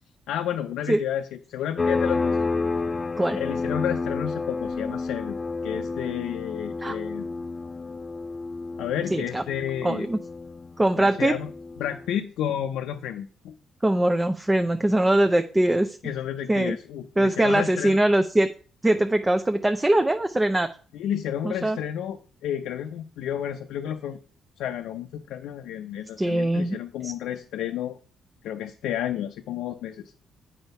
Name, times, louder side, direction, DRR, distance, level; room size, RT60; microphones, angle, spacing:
voice 1, 0.3-2.4 3.3-5.4 5.6-7.3 8.8-10.1 11.0-11.5 11.8-13.5 16.0-18.0 20.9-24.2 24.6-28.0 28.4-30.1, left 10 dB, 85° left, 5 dB, 0.5 m, -31 dB
sound 1, 1.8-12.1, left 4 dB, 30° left, 0.3 m, -30 dB
voice 2, 9.1-9.4 9.8-10.2 10.8-11.3 13.8-16.0 16.5-16.8 17.2-18.5 18.8-20.7 21.4-21.8 26.2-26.8 27.0-27.1, right 1 dB, 15° right, 7 dB, 0.6 m, -22 dB
8.1 x 4.6 x 5.4 m, 0.40 s
cardioid pair, 90°, 0 cm